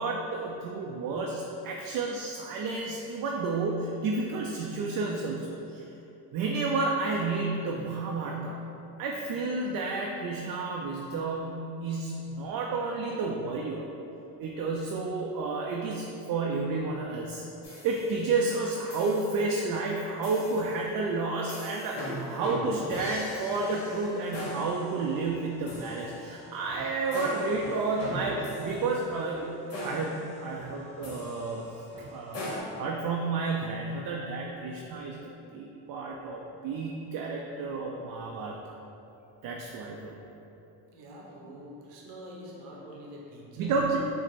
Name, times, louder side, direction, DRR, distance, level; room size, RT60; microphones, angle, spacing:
voice 1, 0.0-5.8 6.3-8.6 9.0-13.9 14.4-31.6 32.1-35.2 35.5-38.8 39.4-40.1 43.6-44.0, right 3 dB, 50° right, -1 dB, 0.5 m, -31 dB
sound 1, 17.6-18.4 18.9-19.5 20.2-20.8 21.5-32.6, equal, 50° left, 1.3 m, -40 dB
voice 2, 40.9-43.8, equal, 85° right, -2 dB, 0.9 m, -45 dB
4.5 x 2.1 x 4.1 m, 2.9 s
supercardioid pair, 75°, 43 cm